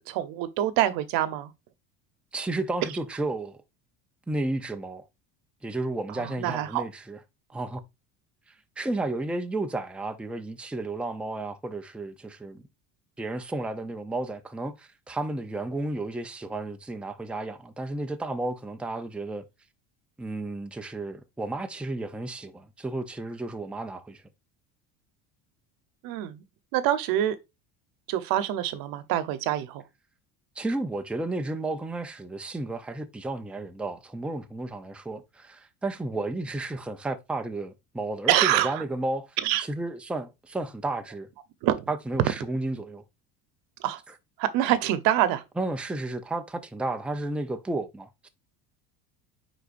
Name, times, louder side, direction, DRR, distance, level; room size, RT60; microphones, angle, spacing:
voice 1, 0.1-1.5 6.1-6.8 26.0-26.4 26.7-27.4 28.1-29.8 38.3-38.8 39.4-39.6 41.6-41.9 43.8-44.0 44.4-45.4, right 12 dB, 70° right, 1.0 m, -25 dB
voice 2, 2.3-3.6 4.3-5.0 5.6-7.2 7.5-7.8 8.8-12.6 13.2-19.4 20.2-24.2 30.6-41.3 41.9-43.0 45.6-48.3, right 2 dB, 5° right, 0.7 m, -32 dB
9.4 x 4.1 x 2.6 m
cardioid pair, 130°, 37 cm